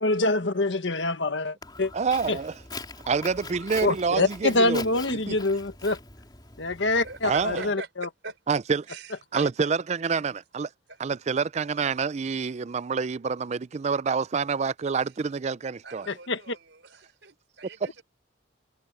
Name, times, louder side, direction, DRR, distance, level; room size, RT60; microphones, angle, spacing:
voice 1, 0.0-1.9 2.3-2.4 3.8-6.0 6.6-8.1 16.1-16.6, left 2 dB, 70° left, 1.5 m, -25 dB
Walk footsteps, 1.6-7.7, left 3 dB, 25° left, 3.7 m, -43 dB
voice 2, 1.9-2.6 3.1-5.4 7.2-7.6 8.5-8.9 9.3-10.7 11.0-16.1, right 5 dB, 35° right, 0.4 m, -27 dB
voice 3, 6.8-8.4 8.9-9.7 10.9-11.0 15.8-18.0, right 3 dB, 70° right, 4.7 m, -42 dB
head